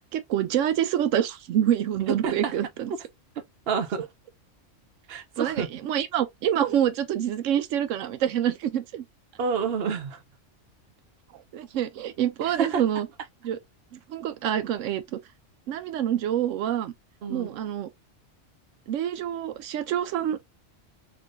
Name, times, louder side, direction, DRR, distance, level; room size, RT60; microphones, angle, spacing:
voice 1, 0.1-2.9 5.4-9.0 11.3-13.1 13.4-13.6 13.9-15.2 15.7-16.9 17.3-17.9 18.9-20.4, right 10 dB, 90° right, 0.9 m, -26 dB
voice 2, 2.1-2.5 3.7-4.0 5.1-5.7 9.4-10.2 12.5-12.8 17.2-17.6, right 6 dB, 60° right, 1.0 m, -28 dB
3.3 x 3.0 x 2.5 m
omnidirectional pair, 1.3 m